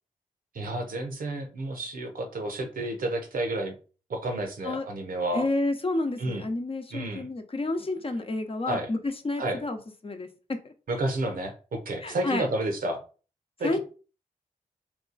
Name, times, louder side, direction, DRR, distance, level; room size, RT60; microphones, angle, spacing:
voice 1, 0.5-3.8 4.1-5.5 6.2-6.5 6.9-7.3 8.6-8.9 9.4-9.6 10.9-13.0 13.6-13.8, right 1 dB, 70° right, 5 dB, 0.9 m, -31 dB
voice 2, 5.3-9.8 10.0-10.6 12.0-12.5 13.6-13.8, left 2 dB, 40° left, 6 dB, 0.8 m, -30 dB
2.9 x 2.3 x 3.9 m, 0.36 s
supercardioid pair, 40°, 15 cm